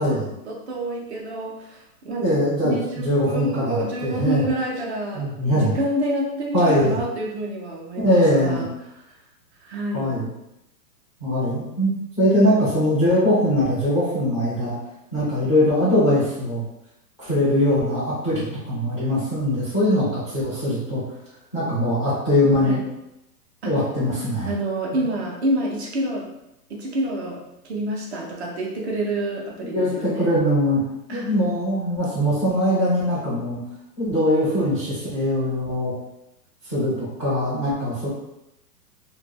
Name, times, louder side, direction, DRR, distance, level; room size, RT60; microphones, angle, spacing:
voice 1, 0.5-2.3 2.6-8.7 9.6-10.2 22.6-22.8 23.6-23.8 24.5-26.3 26.7-30.3 31.1-31.4, right 1 dB, 45° right, -1 dB, 0.5 m, -28 dB
voice 2, 2.2-4.4 5.1-5.7 6.5-7.0 8.0-8.6 9.9-10.3 11.2-14.8 15.1-16.6 17.2-21.0 21.5-22.8 23.6-24.5 24.9-25.0 29.7-30.8 31.1-33.6 34.0-35.9 36.6-38.1, left 1 dB, 20° left, -12 dB, 0.3 m, -21 dB
2.2 x 2.1 x 3.3 m, 0.87 s
hypercardioid pair, 155°, 48 cm